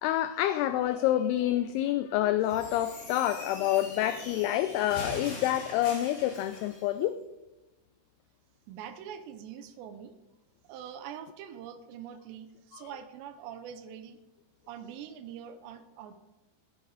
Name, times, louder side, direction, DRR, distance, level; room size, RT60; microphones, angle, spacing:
voice 1, 0.0-7.2 12.7-12.9, left 13 dB, 90° left, 12 dB, 2.2 m, -28 dB
sound 1, 2.4-6.8, left 2 dB, 45° left, 4.0 m, -42 dB
voice 2, 8.7-10.2 10.6-14.2 14.7-16.2, right 8 dB, 80° right, 11 dB, 2.9 m, -44 dB
12.0 x 11.0 x 4.8 m, 1.0 s
omnidirectional pair, 5.1 m